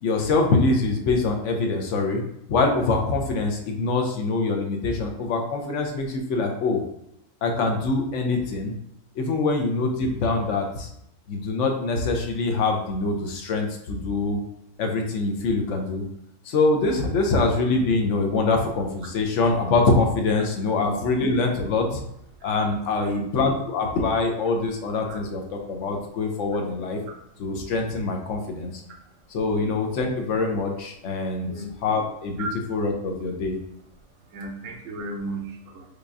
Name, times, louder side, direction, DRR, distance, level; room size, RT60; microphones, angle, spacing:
voice 1, 0.0-2.2 2.5-6.8 7.4-8.7 9.2-10.9 11.3-14.4 14.8-16.0 16.4-22.0 22.4-27.0 27.4-28.8 29.3-33.6, left 3 dB, 70° left, 2 dB, 0.9 m, -24 dB
voice 2, 22.9-23.2 25.1-25.2 29.6-29.7 31.4-31.7 32.4-32.5 34.3-35.9, right 1 dB, 75° right, 2 dB, 1.0 m, -35 dB
4.8 x 2.3 x 2.6 m, 0.77 s
omnidirectional pair, 1.4 m